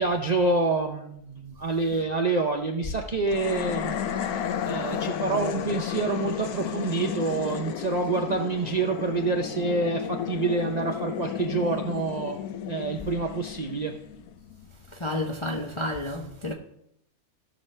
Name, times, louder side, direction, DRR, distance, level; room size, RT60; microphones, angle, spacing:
voice 1, 0.0-4.0 4.6-12.4 12.7-14.0, right 3 dB, 45° right, 0.5 m, -27 dB
sound 1, 3.3-14.6, left 8 dB, 75° left, 1.2 m, -33 dB
voice 2, 15.0-16.5, left 1 dB, 30° left, 0.5 m, -30 dB
16.0 x 6.3 x 3.3 m
omnidirectional pair, 1.7 m